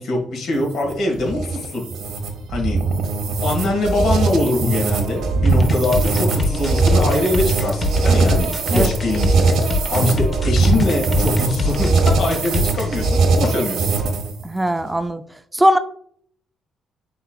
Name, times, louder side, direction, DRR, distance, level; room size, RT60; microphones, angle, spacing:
voice 1, 0.0-1.9 2.5-2.8 3.4-14.1, left 2 dB, 75° left, 0 dB, 1.6 m, -23 dB
sound 1, 0.5-14.4, right 3 dB, 80° right, 0.9 m, -20 dB
sound 2, 5.5-13.0, left 3 dB, 30° left, 0.9 m, -24 dB
voice 2, 14.4-15.3 15.5-15.8, equal, 10° right, 10 dB, 0.3 m, -19 dB
5.5 x 3.8 x 2.3 m, 0.63 s
cardioid pair, 90°, 0 cm